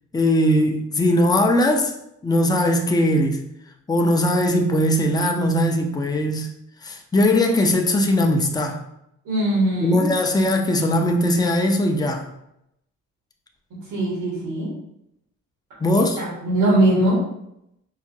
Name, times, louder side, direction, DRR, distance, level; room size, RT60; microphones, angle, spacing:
voice 1, 0.1-1.9 2.2-3.4 3.9-6.5 6.8-8.8 9.8-12.2 15.8-16.2, left 1 dB, 15° left, 3 dB, 0.5 m, -20 dB
voice 2, 9.2-10.1 13.9-14.7 16.2-17.2, right 1 dB, 90° right, -6 dB, 1.5 m, -20 dB
4.8 x 2.1 x 2.7 m, 0.80 s
cardioid pair, 90°, 30 cm